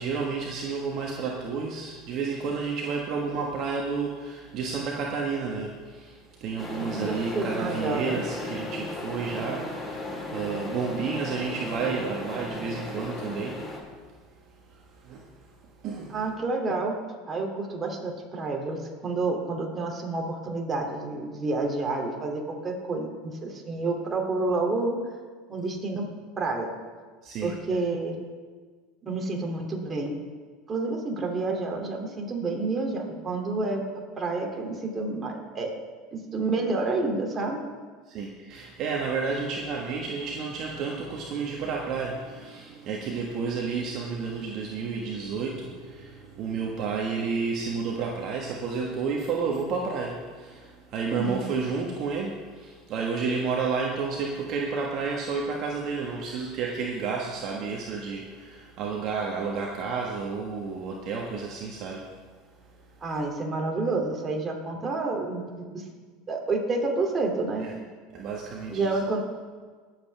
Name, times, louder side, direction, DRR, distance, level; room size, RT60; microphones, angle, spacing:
voice 1, 0.0-13.7 14.7-15.3 15.8-16.2 27.2-27.8 38.1-62.1 67.6-67.7 68.1-68.9, right 5 dB, 50° right, -1 dB, 1.5 m, -31 dB
sound 1, 6.6-13.8, left 1 dB, 20° left, 3.6 m, -36 dB
voice 2, 6.9-8.2 16.1-16.9 17.3-25.0 25.5-26.0 26.4-26.7 27.4-28.2 29.0-30.1 30.7-33.9 34.2-35.7 36.1-37.6 51.1-51.4 63.0-65.9 66.3-67.7 68.7-69.2, right 3 dB, 30° right, 2 dB, 2.6 m, -29 dB
21.0 x 7.8 x 3.4 m, 1.5 s
hypercardioid pair, 85°, 0 cm